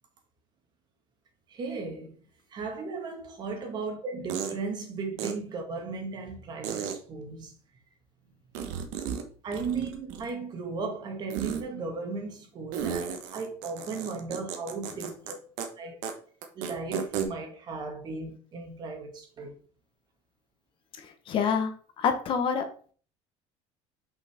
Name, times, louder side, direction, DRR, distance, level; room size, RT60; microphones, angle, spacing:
voice 1, 1.5-2.1 2.5-7.5 9.4-15.4 15.8-16.0 16.6-19.5, right 4 dB, 35° right, 1.8 m, -36 dB
sound 1, 3.4-3.5 4.3-4.6 5.2-5.3 6.6-7.0 8.5-9.2 9.5-10.4 11.3-11.6 12.7-15.3 15.6-15.7 16.0-16.1 16.4-17.3, right 8 dB, 80° right, 1.3 m, -33 dB
voice 2, 21.0-22.6, left 6 dB, 40° left, 1.2 m, -27 dB
5.8 x 5.6 x 3.6 m
cardioid pair, 150°, 13 cm